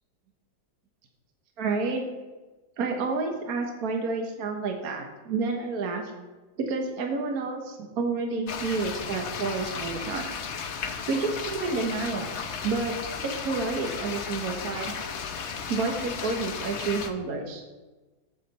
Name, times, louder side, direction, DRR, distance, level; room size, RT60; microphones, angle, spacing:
voice 1, 1.6-2.1 2.8-6.0 6.6-10.3 11.1-12.3 12.6-13.0 13.2-14.9 15.7-17.6, right 4 dB, 60° right, 3 dB, 1.6 m, -29 dB
sound 1, 8.5-17.1, left 6 dB, 55° left, 0.8 m, -35 dB
14.0 x 6.6 x 4.2 m, 1.2 s
omnidirectional pair, 1.9 m